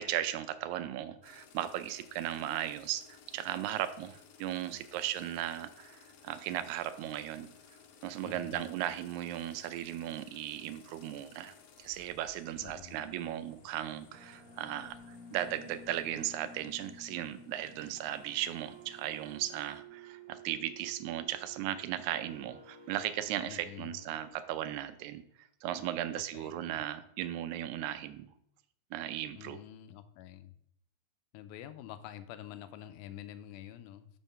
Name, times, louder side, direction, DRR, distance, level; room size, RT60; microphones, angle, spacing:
voice 1, 0.0-7.5 8.0-28.3 28.9-29.6, right 12 dB, 85° right, 11 dB, 1.9 m, -37 dB
sound 1, 1.2-19.8, left 7 dB, 70° left, 1.5 m, -59 dB
voice 2, 8.2-8.7 12.6-13.5 23.4-24.0 26.3-26.8 29.4-30.5 31.3-34.1, left 11 dB, 90° left, 12 dB, 2.0 m, -48 dB
sound 2, 13.3-24.3, right 1 dB, 40° right, 1.9 m, -53 dB
5.6 x 4.5 x 5.4 m, 0.71 s
omnidirectional pair, 3.4 m